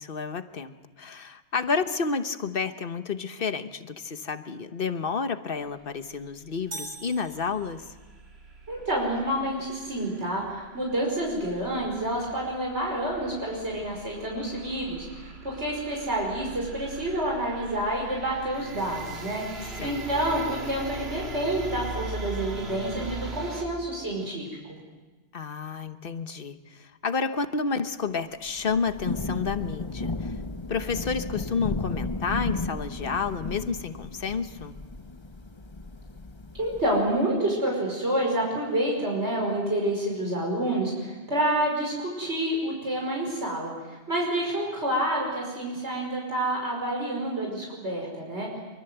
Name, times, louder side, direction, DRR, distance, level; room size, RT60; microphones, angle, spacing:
voice 1, 0.0-8.0 19.6-20.1 25.3-30.3 30.7-34.8, left 5 dB, 55° left, 10 dB, 1.3 m, -30 dB
sound 1, 6.0-23.6, right 2 dB, 70° right, 2.6 m, -41 dB
sound 2, 6.7-8.1, right 2 dB, 50° right, 2.3 m, -41 dB
voice 2, 8.7-24.5 36.6-48.5, right 1 dB, 85° right, -2 dB, 5.7 m, -28 dB
Thunder / Rain, 28.5-37.1, left 2 dB, 25° left, 1.0 m, -34 dB
24.0 x 24.0 x 8.0 m, 1.3 s
omnidirectional pair, 1.1 m